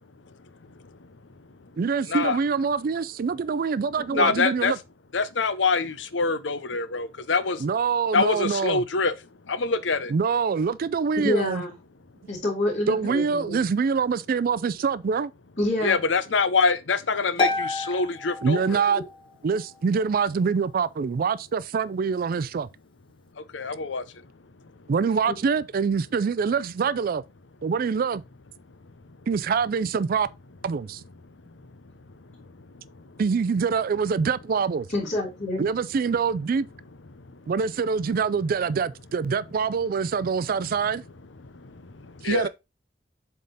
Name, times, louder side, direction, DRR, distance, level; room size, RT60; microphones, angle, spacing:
voice 1, 1.8-4.8 7.6-8.8 10.1-11.6 12.9-15.3 18.4-19.0 19.4-22.7 24.9-27.2 27.6-28.2 29.3-30.3 30.6-31.0 33.2-34.9 35.6-36.7 37.5-41.0 42.2-42.5, right 5 dB, 50° right, 0.4 m, -25 dB
voice 2, 4.2-4.7 5.1-7.6 8.1-9.1 9.5-10.1 15.8-18.8 23.5-24.0 41.6-42.5, left 4 dB, 90° left, 0.8 m, -25 dB
voice 3, 11.2-11.7 12.3-13.6 15.6-16.0 25.3-25.4 34.9-35.6, left 1 dB, 45° left, 2.9 m, -27 dB
Harp, 17.4-19.3, left 3 dB, 30° left, 1.1 m, -29 dB
7.5 x 3.6 x 4.0 m
head